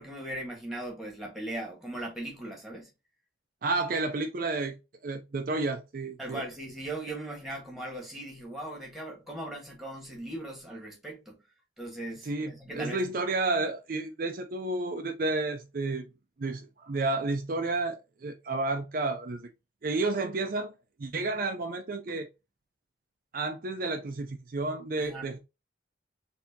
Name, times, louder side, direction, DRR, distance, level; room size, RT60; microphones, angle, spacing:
voice 1, 0.0-2.9 6.2-11.4 11.8-13.0 25.0-25.4, right 1 dB, ahead, 1.4 m, -39 dB
voice 2, 3.6-4.8 5.0-6.4 12.2-16.1 16.4-19.5 19.8-20.7 21.0-22.3 23.3-25.4, right 3 dB, 50° right, 0.5 m, -31 dB
4.2 x 2.8 x 2.7 m
head